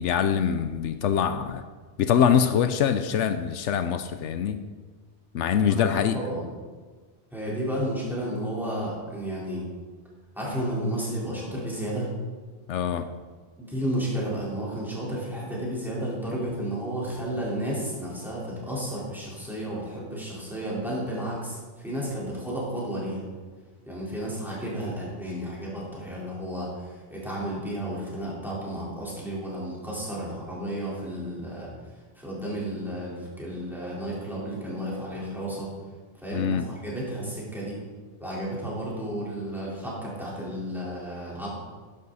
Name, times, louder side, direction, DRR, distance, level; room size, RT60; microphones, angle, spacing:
voice 1, 0.0-1.6 2.0-4.6 5.3-6.2 12.7-13.1 36.3-36.6, left 8 dB, 80° left, 9 dB, 0.9 m, -24 dB
voice 2, 5.4-6.5 7.3-9.7 10.4-12.1 13.6-23.2 23.9-35.7 36.2-37.8 38.2-41.6, right 1 dB, ahead, -6 dB, 3.9 m, -32 dB
12.5 x 10.5 x 4.1 m, 1.4 s
omnidirectional pair, 1.2 m